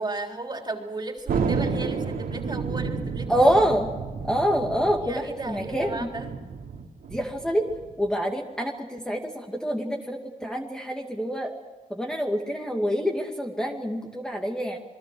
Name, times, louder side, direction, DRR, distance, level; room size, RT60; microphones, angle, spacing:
voice 1, 0.0-3.5 5.0-6.3, right 2 dB, 30° right, 3 dB, 3.7 m, -35 dB
Thunder, 1.3-8.1, right 5 dB, 85° right, 3.2 m, -31 dB
voice 2, 3.3-3.9 4.2-6.1 7.1-7.7 8.0-11.5 11.9-14.8, equal, 5° left, 1 dB, 2.4 m, -26 dB
28.0 x 21.5 x 6.3 m, 1.3 s
cardioid pair, 105°, 15 cm